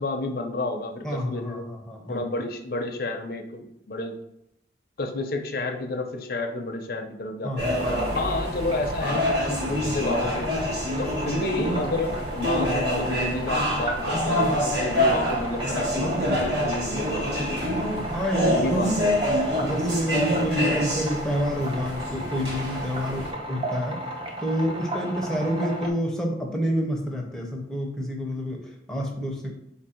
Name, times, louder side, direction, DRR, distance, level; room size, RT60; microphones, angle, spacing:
voice 1, 0.0-1.7 2.1-4.2 5.0-7.7 8.1-10.5 11.0-17.6 18.4-19.1, left 2 dB, 55° left, 4 dB, 0.5 m, -30 dB
voice 2, 1.0-2.2 7.4-7.9 17.8-19.1 19.6-24.0 24.4-29.6, equal, 5° left, 0 dB, 0.6 m, -28 dB
sound 1, 7.6-23.3, equal, 65° right, 1.3 m, -26 dB
sound 2, 7.8-25.9, right 1 dB, 30° right, 0.7 m, -35 dB
4.0 x 2.6 x 4.2 m, 0.81 s
head